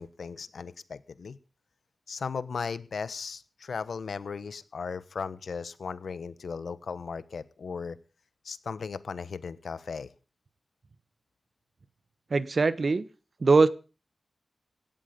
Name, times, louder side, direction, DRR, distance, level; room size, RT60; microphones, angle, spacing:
voice 1, 0.0-1.4 2.1-8.0 8.4-10.1, left 5 dB, 80° left, 15 dB, 1.2 m, -36 dB
voice 2, 12.3-13.0 13.4-13.7, right 4 dB, 50° right, 16 dB, 1.1 m, -21 dB
17.5 x 13.0 x 5.3 m, 0.36 s
wide cardioid pair, 80°, 0 cm